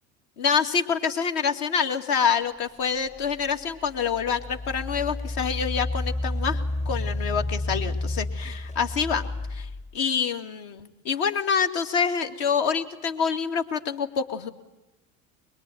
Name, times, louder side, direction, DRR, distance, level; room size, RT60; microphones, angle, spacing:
voice 1, 0.4-14.5, left 6 dB, 60° left, 5 dB, 2.5 m, -26 dB
Engine, 3.2-3.3 4.0-9.9, left 2 dB, 15° left, 0.8 m, -30 dB
23.5 x 23.0 x 9.5 m, 1.0 s
hypercardioid pair, 80°, 41 cm